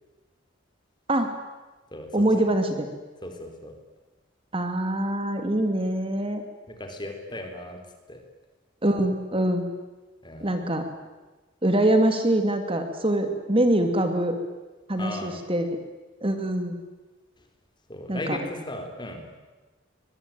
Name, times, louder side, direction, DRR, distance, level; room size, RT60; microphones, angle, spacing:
voice 1, 2.1-2.9 4.5-6.4 8.8-9.7 10.4-10.8 11.6-14.4 14.9-15.7 16.2-16.8 18.1-18.4, right 1 dB, 30° right, 7 dB, 2.2 m, -24 dB
voice 2, 3.2-3.7 6.8-7.8 8.1-8.2 10.2-10.6 15.0-15.4 17.9-19.2, left 1 dB, 25° left, 5 dB, 3.9 m, -36 dB
23.5 x 22.0 x 9.2 m, 1.2 s
head